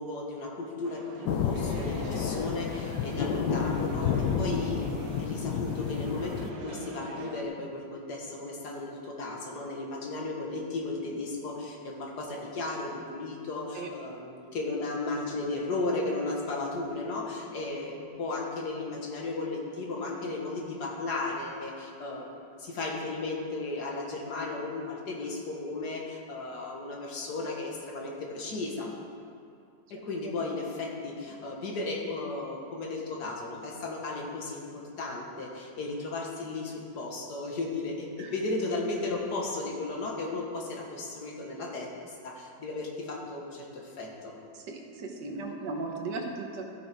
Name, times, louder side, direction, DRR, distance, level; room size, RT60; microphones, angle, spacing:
voice 1, 0.0-28.9 29.9-44.3, left 2 dB, 70° left, -1 dB, 2.0 m, -35 dB
sound 1, 0.8-7.4, right 3 dB, 60° right, 1.3 m, -44 dB
sound 2, 1.3-6.5, left 6 dB, 90° left, 1.3 m, -30 dB
voice 2, 44.7-46.6, right 3 dB, 85° right, 2 dB, 1.7 m, -36 dB
14.5 x 6.4 x 4.7 m, 2.5 s
omnidirectional pair, 1.8 m